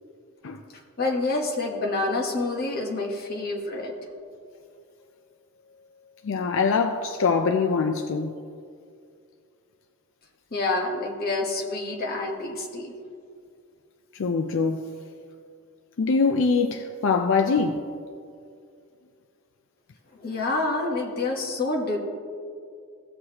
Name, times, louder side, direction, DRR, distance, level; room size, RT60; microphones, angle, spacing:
voice 1, 1.0-3.9 10.5-12.9 20.1-22.0, left 2 dB, 45° left, 1.2 m, -27 dB
voice 2, 6.2-8.3 14.2-14.9 16.0-17.8, left 4 dB, 60° left, 0.4 m, -23 dB
16.5 x 6.4 x 2.9 m
head